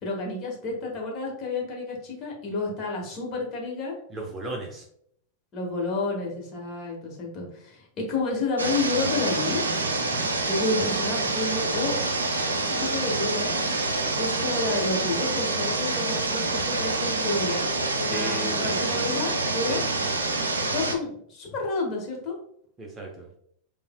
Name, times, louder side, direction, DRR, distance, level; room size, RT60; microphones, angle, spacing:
voice 1, 0.0-4.0 5.5-9.6 10.1-11.9 12.7-13.5 14.2-17.7 18.0-19.8 20.6-22.4, left 3 dB, 30° left, -2 dB, 1.5 m, -30 dB
voice 2, 4.1-4.8 10.0-10.3 18.0-19.0 19.7-19.9 22.8-23.3, right 2 dB, 20° right, 1 dB, 0.7 m, -36 dB
sound 1, 8.6-20.9, right 2 dB, 70° right, 0.5 m, -27 dB
6.8 x 2.6 x 2.2 m, 0.68 s
figure-of-eight pair, 90°, 0 cm